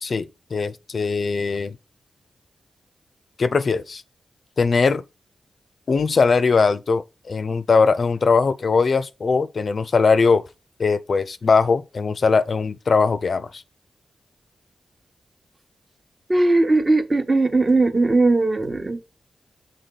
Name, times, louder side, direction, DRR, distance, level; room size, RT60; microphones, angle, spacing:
voice 1, 0.0-1.8 3.4-4.0 4.6-5.0 5.9-10.4 10.8-13.6, left 4 dB, 60° left, 0.4 m, -20 dB
voice 2, 16.3-19.0, right 2 dB, 30° right, 0.9 m, -18 dB
6.7 x 3.8 x 3.9 m
cardioid pair, 65°, 0 cm